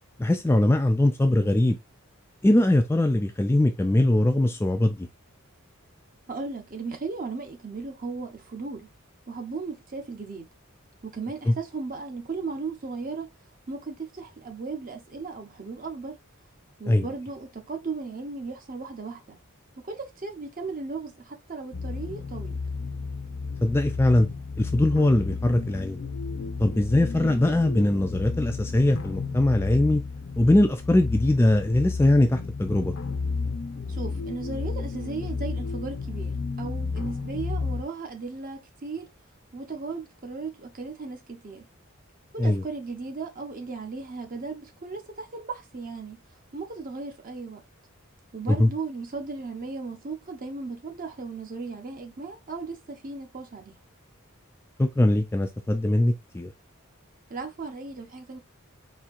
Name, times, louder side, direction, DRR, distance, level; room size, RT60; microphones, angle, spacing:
voice 1, 0.2-1.8 2.4-5.1 11.5-11.6 16.9-17.0 23.6-24.3 24.6-26.0 26.6-30.0 30.4-32.9 42.4-42.6 48.5-48.7 54.8-56.5, left 1 dB, 10° left, 0.3 m, -21 dB
voice 2, 6.3-8.9 9.3-10.5 11.0-13.3 13.7-16.2 16.8-19.4 19.8-22.6 27.1-27.4 33.9-39.1 39.5-41.6 42.3-46.2 46.5-47.6 48.3-53.7 57.3-58.4, right 4 dB, 40° right, 0.8 m, -36 dB
sound 1, 21.7-37.8, left 4 dB, 65° left, 0.6 m, -32 dB
4.3 x 2.7 x 2.4 m
head